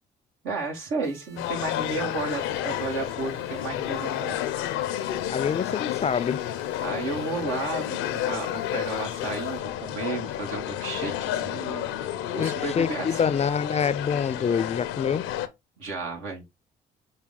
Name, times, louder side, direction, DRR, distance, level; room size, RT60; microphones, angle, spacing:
voice 1, 0.4-4.4 6.8-13.4 15.8-16.4, right 3 dB, 80° right, 1.4 m, -33 dB
sound 1, 1.0-9.6, right 2 dB, 55° right, 2.7 m, -50 dB
sound 2, 1.4-15.5, left 12 dB, 85° left, 0.5 m, -31 dB
voice 2, 5.3-6.4 12.4-15.3, left 6 dB, 30° left, 0.4 m, -26 dB
5.6 x 2.3 x 3.6 m
supercardioid pair, 60°, 21 cm